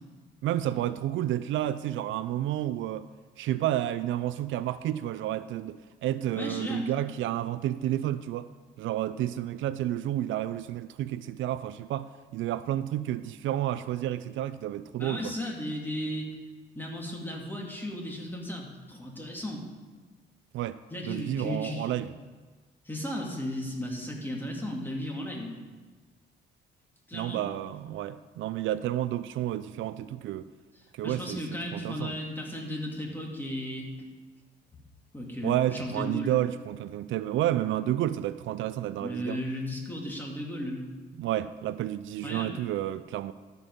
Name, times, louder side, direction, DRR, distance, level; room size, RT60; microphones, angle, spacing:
voice 1, 0.4-3.1 3.4-8.5 8.8-15.3 20.5-22.1 27.1-30.5 30.9-31.4 31.7-32.2 35.4-39.4 41.2-43.3, right 13 dB, 80° right, 14 dB, 0.4 m, -30 dB
voice 2, 6.3-6.9 14.9-16.3 16.7-19.6 20.9-21.9 22.9-25.6 27.1-27.4 31.0-33.9 35.1-36.4 39.0-40.9 42.2-42.6, left 1 dB, 10° left, -1 dB, 2.3 m, -35 dB
13.0 x 5.3 x 5.4 m, 1.4 s
cardioid pair, 90°, 20 cm